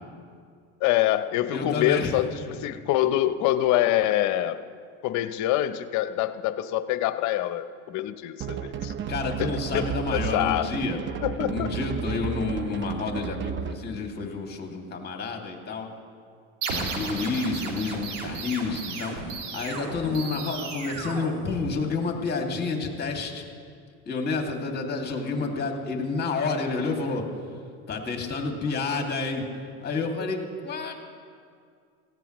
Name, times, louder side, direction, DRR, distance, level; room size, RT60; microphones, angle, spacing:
voice 1, 0.8-4.6 5.0-8.9 9.4-10.7 11.2-11.7, left 13 dB, 50° left, 12 dB, 0.8 m, -25 dB
voice 2, 1.5-2.1 9.1-11.0 11.4-15.9 16.7-19.1 19.5-23.5 24.1-27.2 27.9-29.5 29.8-31.0, left 4 dB, 25° left, 2 dB, 2.3 m, -29 dB
sound 1, 8.4-13.9, right 8 dB, 30° right, 0.7 m, -33 dB
sound 2, 16.6-22.0, right 4 dB, 85° right, 2.2 m, -34 dB
17.5 x 14.5 x 3.1 m, 2.2 s
supercardioid pair, 105°, 36 cm